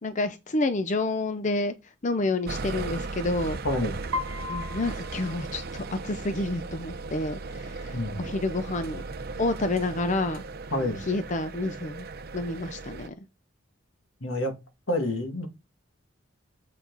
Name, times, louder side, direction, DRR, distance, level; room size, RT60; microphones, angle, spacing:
voice 1, 0.0-3.6 4.5-9.0 9.4-10.4 10.7-12.1 12.3-13.1, left 2 dB, 40° left, 0.6 m, -29 dB
sound 1, 2.5-13.1, right 3 dB, 50° right, 0.8 m, -37 dB
Piano, 4.1-6.2, left 3 dB, 90° right, 0.9 m, -36 dB
voice 2, 7.9-8.3 10.7-11.0 14.2-14.5 14.9-15.5, left 1 dB, 75° left, 2.0 m, -28 dB
7.7 x 7.6 x 4.0 m
head